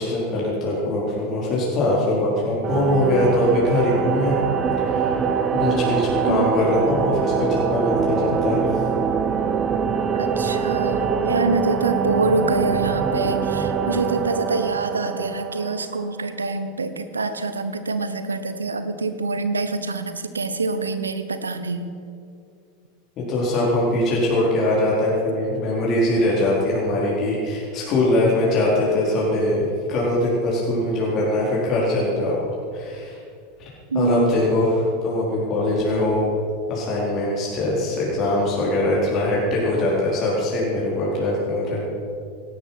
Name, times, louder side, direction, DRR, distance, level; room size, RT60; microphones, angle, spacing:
voice 1, 0.0-4.4 4.8-5.1 5.5-8.7 23.2-33.2 33.9-36.3 36.7-41.8, left 1 dB, 40° left, -5 dB, 4.4 m, -22 dB
sound 1, 2.6-16.2, right 6 dB, 35° right, 1.1 m, -24 dB
voice 2, 10.2-21.9 33.9-34.3, right 3 dB, 90° right, 10 dB, 1.1 m, -25 dB
17.5 x 12.5 x 6.0 m, 2.4 s
hypercardioid pair, 85°, 0 cm